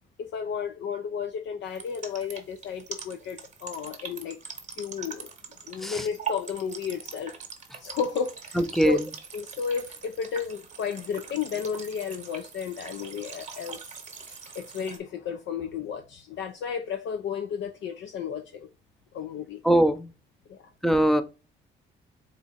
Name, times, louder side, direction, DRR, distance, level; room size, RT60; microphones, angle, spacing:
voice 1, 0.2-4.4 4.8-5.3 5.6-7.3 7.8-8.6 8.8-9.0 9.3-14.0 14.5-18.7 19.1-19.6 20.5-20.6, left 7 dB, 70° left, 0.5 m, -33 dB
sound 1, 1.7-15.0, right 6 dB, 40° right, 0.9 m, -42 dB
voice 2, 8.6-9.0 19.6-20.1 20.8-21.2, right 1 dB, ahead, 0.5 m, -21 dB
4.1 x 2.4 x 4.0 m
cardioid pair, 90°, 20 cm